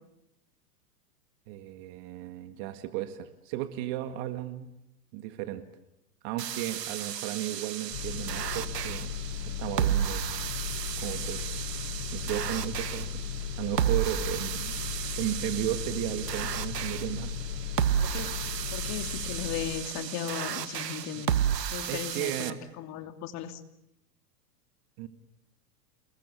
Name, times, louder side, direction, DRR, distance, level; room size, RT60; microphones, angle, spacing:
voice 1, 1.5-4.7 5.1-5.7 6.2-9.1 9.6-10.4 11.0-11.4 12.1-13.1 13.6-14.8 15.1-17.3 21.2-21.3 21.9-22.6 25.0-25.1, right 13 dB, 45° right, 8 dB, 2.0 m, -34 dB
sound 1, 6.4-22.5, right 10 dB, 80° right, 1.9 m, -33 dB
sound 2, 7.9-19.7, left 9 dB, 70° left, 6.5 m, -36 dB
voice 2, 18.0-18.3 18.7-23.6, left 9 dB, 35° left, 7 dB, 2.8 m, -37 dB
30.0 x 21.5 x 8.6 m, 0.86 s
hypercardioid pair, 120°, 48 cm